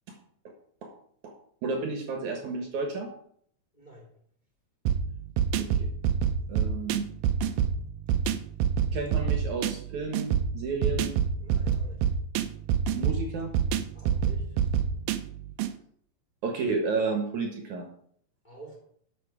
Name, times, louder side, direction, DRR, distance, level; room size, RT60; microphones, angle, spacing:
voice 1, 1.6-3.1 5.6-5.9 6.5-7.1 8.9-11.1 12.9-13.5 16.4-17.9, right 4 dB, 65° right, 3 dB, 2.4 m, -31 dB
voice 2, 3.7-4.1 11.4-12.2 13.9-14.6 18.4-18.8, right 1 dB, 15° left, -1 dB, 2.6 m, -49 dB
sound 1, 4.9-15.7, right 8 dB, 85° right, 2.4 m, -27 dB
11.5 x 7.3 x 4.9 m, 0.63 s
omnidirectional pair, 4.1 m